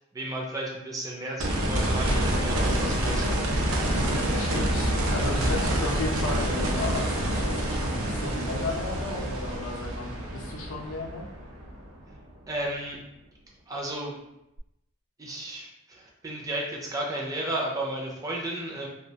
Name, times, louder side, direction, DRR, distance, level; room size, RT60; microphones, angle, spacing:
voice 1, 0.0-3.3 12.5-13.0 13.7-14.1 15.2-18.9, right 1 dB, 15° right, -2 dB, 0.4 m, -33 dB
sound 1, 1.4-12.3 14.6-14.7, right 1 dB, 85° right, 0.5 m, -27 dB
voice 2, 3.9-11.3, left 2 dB, 70° left, -1 dB, 0.5 m, -34 dB
2.3 x 2.1 x 2.7 m, 0.89 s
head